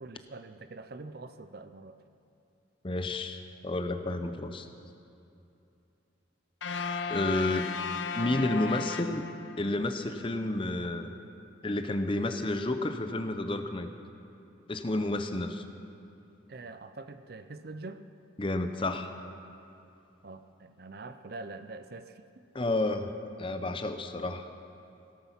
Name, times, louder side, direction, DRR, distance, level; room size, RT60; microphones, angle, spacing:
voice 1, 0.0-2.0 16.5-18.0 20.2-22.5, right 3 dB, 50° right, 11 dB, 0.5 m, -44 dB
voice 2, 2.8-4.7 7.1-7.7 8.2-9.3 9.6-11.1 11.6-13.9 14.7-15.6 18.4-19.1 22.5-23.1 23.4-24.5, left 2 dB, 25° left, 7 dB, 0.7 m, -30 dB
sound 1, 6.6-9.8, left 5 dB, 70° left, 0.7 m, -35 dB
17.0 x 13.0 x 5.8 m, 2.8 s
head